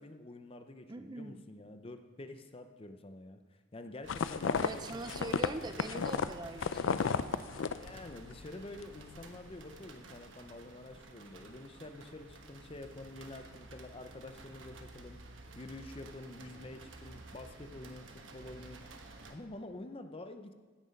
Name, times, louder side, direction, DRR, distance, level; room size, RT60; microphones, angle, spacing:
voice 1, 0.0-3.4 3.7-5.4 7.5-15.2 15.5-18.1 18.3-18.8 19.3-20.5, left 2 dB, 30° left, 8 dB, 0.6 m, -48 dB
voice 2, 0.9-1.4 4.6-7.4, right 2 dB, 20° right, 8 dB, 0.5 m, -43 dB
sound 1, 4.0-19.4, right 2 dB, 80° right, 1.1 m, -53 dB
sound 2, 4.1-8.4 8.7-9.2, left 6 dB, 85° left, 0.4 m, -33 dB
16.0 x 6.0 x 5.3 m, 1.4 s
head